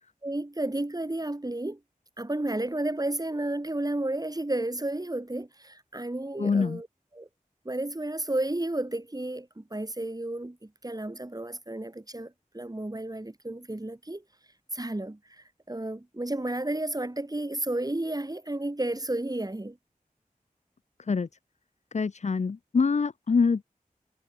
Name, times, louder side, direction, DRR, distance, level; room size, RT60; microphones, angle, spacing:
voice 1, 0.2-1.8 2.2-6.9 7.1-7.3 7.6-14.2 14.7-19.8, right 1 dB, 25° right, 3.0 m, -32 dB
voice 2, 6.4-6.8 21.1-21.3 21.9-23.6, left 5 dB, 55° left, 0.5 m, -25 dB
wide cardioid pair, 55°, 15 cm